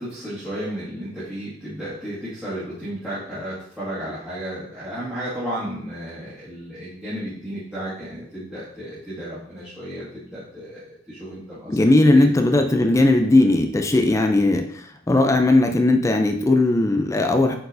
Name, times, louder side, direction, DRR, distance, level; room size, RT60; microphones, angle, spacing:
voice 1, 0.0-11.8 12.1-12.3, right 1 dB, 5° right, -14 dB, 2.0 m, -33 dB
voice 2, 11.7-17.6, left 2 dB, 15° left, 5 dB, 0.4 m, -18 dB
8.2 x 4.4 x 2.6 m, 0.68 s
head